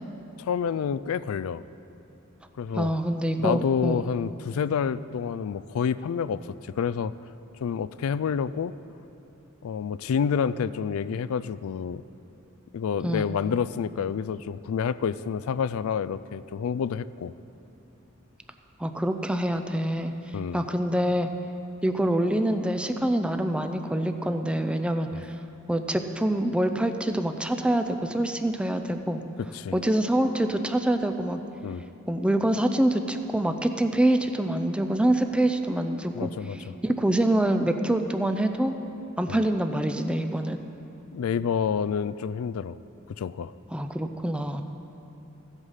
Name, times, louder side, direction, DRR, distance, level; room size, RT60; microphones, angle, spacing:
voice 1, 0.4-1.6 2.6-2.9 3.4-7.1 7.6-8.7 9.6-12.0 12.7-17.3 20.3-20.6 25.1-25.2 29.5-29.8 31.6-31.9 36.1-36.8 39.3-39.4 41.1-42.8 43.2-43.5, left 7 dB, 85° left, 17 dB, 0.3 m, -28 dB
voice 2, 2.7-4.1 13.0-13.3 18.8-20.1 20.5-21.3 21.8-25.4 25.7-29.2 29.7-31.4 32.1-38.7 39.2-40.6 43.7-44.6, right 1 dB, 5° right, 7 dB, 0.4 m, -25 dB
15.0 x 8.1 x 5.6 m, 2.8 s
head